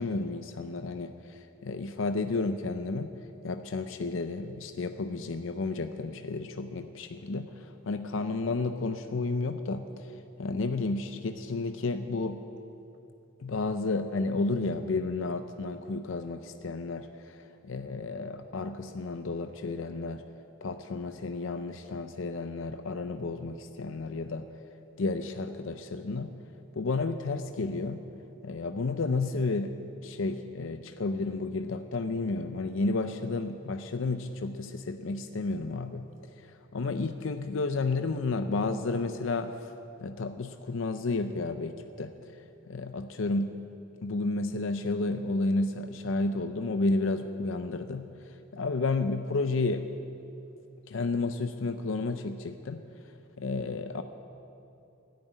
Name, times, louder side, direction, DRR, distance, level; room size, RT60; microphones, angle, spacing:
voice 1, 0.0-3.1 3.4-10.1 10.4-12.4 13.4-20.2 20.6-24.5 25.0-26.3 26.8-28.0 28.4-29.7 30.0-36.1 36.7-39.5 40.0-42.1 42.7-43.5 44.0-48.1 48.5-49.9 50.9-52.8 53.4-54.0, left 3 dB, 65° left, 9 dB, 0.6 m, -31 dB
12.5 x 10.5 x 9.1 m, 2.8 s
head